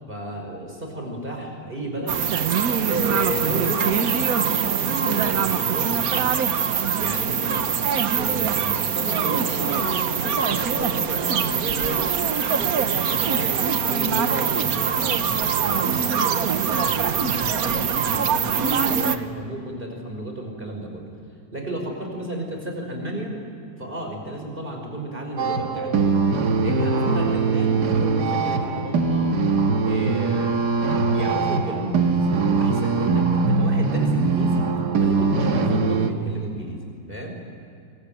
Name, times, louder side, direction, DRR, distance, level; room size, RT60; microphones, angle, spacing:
voice 1, 0.1-2.3 2.8-6.4 7.0-7.7 8.1-12.1 12.5-16.4 16.7-21.0 21.5-23.3 23.8-26.2 26.6-29.3 29.8-30.6 31.1-36.8 37.1-37.4, right 1 dB, 35° right, 2 dB, 5.6 m, -32 dB
sound 1, 2.1-19.2, right 7 dB, 65° right, 1.5 m, -23 dB
sound 2, 25.4-36.1, right 4 dB, 85° right, 2.1 m, -22 dB
24.5 x 24.0 x 9.2 m, 2.6 s
omnidirectional pair, 1.7 m